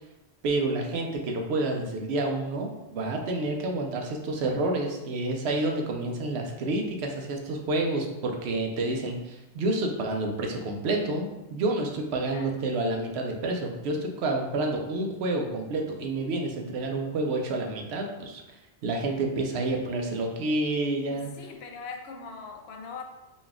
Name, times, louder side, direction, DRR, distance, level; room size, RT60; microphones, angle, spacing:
voice 1, 0.4-18.4 18.8-21.3, right 2 dB, 80° right, 2 dB, 0.9 m, -29 dB
voice 2, 21.1-23.0, left 5 dB, 75° left, 4 dB, 0.8 m, -41 dB
4.1 x 2.3 x 3.5 m, 0.96 s
omnidirectional pair, 1.1 m